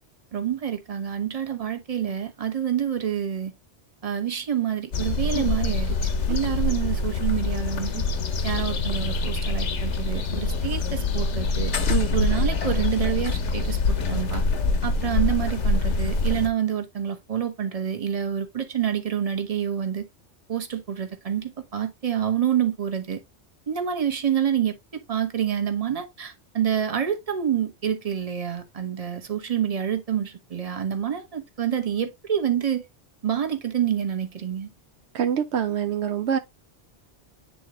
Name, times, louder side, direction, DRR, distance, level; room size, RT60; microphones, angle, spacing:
voice 1, 0.3-3.5 4.0-6.0 6.3-8.0 8.4-11.7 12.1-14.4 14.8-20.1 20.5-23.2 23.7-32.8 33.2-34.7, right 9 dB, 35° right, 1.0 m, -27 dB
sound 1, 4.9-16.5, left 3 dB, 85° left, 1.2 m, -25 dB
voice 2, 35.1-36.4, right 8 dB, 75° right, 0.9 m, -25 dB
9.3 x 3.8 x 3.0 m
omnidirectional pair, 1.2 m